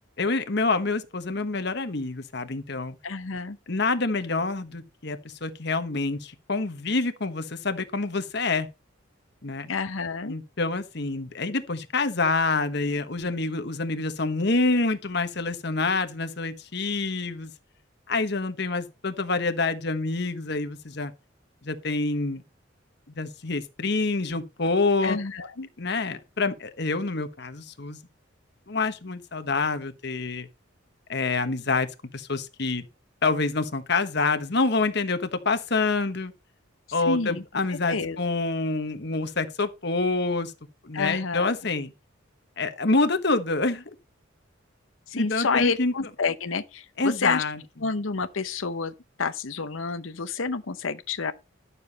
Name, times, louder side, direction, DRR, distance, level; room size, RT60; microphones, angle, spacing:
voice 1, 0.2-3.0 3.7-8.7 9.4-9.7 10.3-17.5 18.1-21.1 21.6-22.4 23.2-25.2 25.8-28.0 28.7-30.5 31.1-31.9 32.1-32.8 33.2-36.3 36.9-40.5 40.8-41.9 42.6-43.8 45.1-45.9 47.0-47.6, left 3 dB, 55° left, 1.2 m, -27 dB
voice 2, 3.0-3.6 9.7-10.3 25.0-25.7 37.1-37.4 37.7-38.2 40.9-41.5 45.1-47.4 47.8-48.9 49.2-51.3, left 4 dB, 75° left, 0.8 m, -29 dB
12.0 x 7.0 x 4.2 m
head